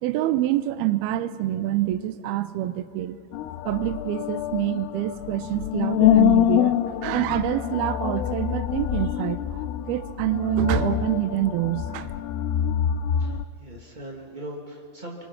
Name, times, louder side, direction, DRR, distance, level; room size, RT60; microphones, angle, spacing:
voice 1, 0.0-3.2 3.7-12.1, right 14 dB, 80° right, 11 dB, 2.4 m, -26 dB
sound 1, 3.3-13.4, left 12 dB, 80° left, 2.5 m, -25 dB
voice 2, 13.2-15.2, right 1 dB, 30° right, -3 dB, 0.8 m, -40 dB
29.5 x 25.0 x 5.9 m, 2.3 s
omnidirectional pair, 5.2 m